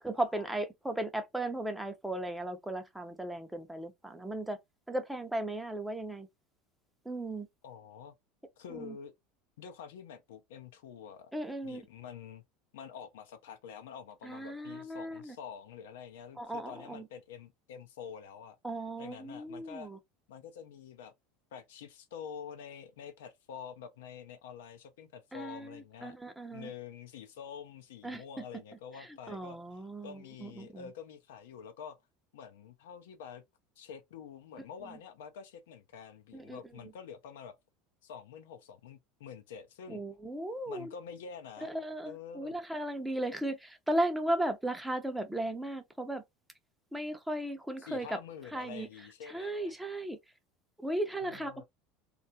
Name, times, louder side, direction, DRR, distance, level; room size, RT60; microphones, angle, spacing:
voice 1, 0.0-4.6 4.9-6.3 7.0-7.5 8.7-9.0 11.3-11.9 14.2-15.4 16.4-17.1 18.6-20.0 25.3-26.7 28.0-28.4 29.0-30.9 34.8-35.0 36.3-36.9 39.9-40.9 41.6-46.2 46.9-48.2 48.5-48.9 49.2-50.2 50.8-51.6, right 1 dB, 5° right, 0.5 m, -36 dB
voice 2, 7.6-8.1 8.6-9.1 9.6-11.3 11.6-12.4 12.7-18.6 19.0-19.9 20.3-21.1 21.5-26.1 26.5-29.6 30.0-32.0 32.3-33.4 33.8-37.5 38.0-40.0 40.7-41.7 42.1-42.6 47.8-49.7 51.2-51.6, left 7 dB, 85° left, 0.5 m, -47 dB
2.3 x 2.0 x 2.6 m
hypercardioid pair, 95°, 0 cm